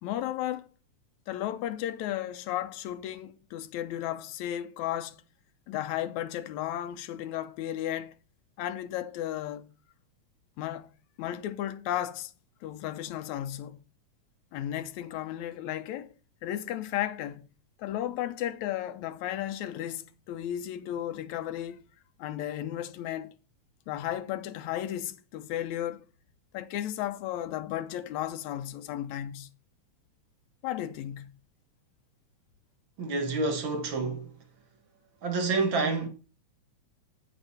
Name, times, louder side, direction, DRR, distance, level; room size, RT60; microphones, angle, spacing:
voice 1, 0.0-0.7 1.3-5.2 5.7-8.1 8.6-9.7 10.6-10.9 11.2-12.3 12.6-13.8 14.5-16.1 16.4-17.4 17.8-21.9 22.2-23.4 23.9-26.1 26.5-29.5 30.6-31.3, left 12 dB, 75° left, 2.0 m, -34 dB
voice 2, 33.0-34.3 35.2-36.1, right 3 dB, 45° right, 2.0 m, -28 dB
9.0 x 8.0 x 4.2 m
omnidirectional pair, 3.4 m